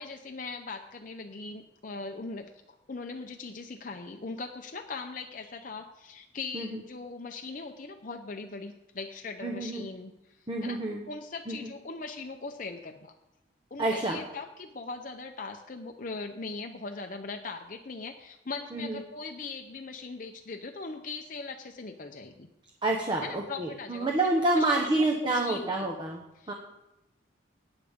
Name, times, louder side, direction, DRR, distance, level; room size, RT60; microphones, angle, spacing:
voice 1, 0.0-2.5 2.9-10.8 11.1-13.1 13.7-22.5 23.2-24.1 24.4-25.9 26.4-26.5, left 3 dB, 45° left, 4 dB, 0.7 m, -40 dB
voice 2, 9.4-9.9 10.5-11.0 11.5-11.6 13.8-14.2 18.7-19.0 22.8-26.2 26.5-26.6, right 2 dB, 25° right, 0 dB, 1.1 m, -28 dB
17.5 x 9.8 x 3.7 m, 0.88 s
head